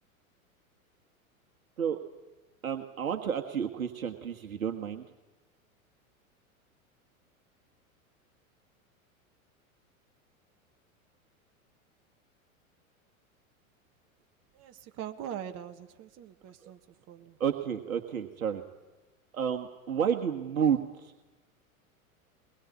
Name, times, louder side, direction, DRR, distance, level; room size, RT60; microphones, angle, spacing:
voice 1, 2.6-5.0 16.6-16.7 17.4-18.6 19.3-21.1, right 8 dB, 75° right, 4 dB, 1.7 m, -31 dB
voice 2, 14.5-16.8 17.1-17.4, right 10 dB, 35° right, 6 dB, 1.7 m, -42 dB
22.5 x 21.0 x 8.4 m, 1.1 s
figure-of-eight pair, 95°, 42 cm